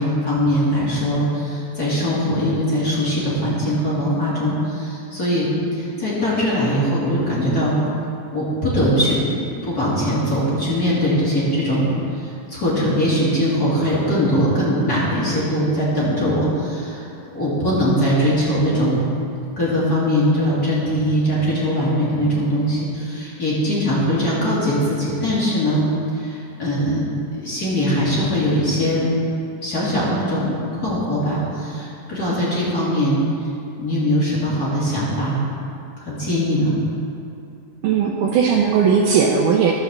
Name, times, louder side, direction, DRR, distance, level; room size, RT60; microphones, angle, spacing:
voice 1, 0.0-7.8 8.3-17.0 17.3-19.0 19.6-25.8 26.1-27.0 27.3-29.1 29.6-33.2 33.8-35.4 36.0-36.7, equal, 30° left, -8 dB, 2.6 m, -21 dB
voice 2, 37.8-39.7, right 6 dB, 75° right, 1 dB, 2.0 m, -17 dB
12.5 x 6.6 x 7.1 m, 2.6 s
omnidirectional pair, 4.2 m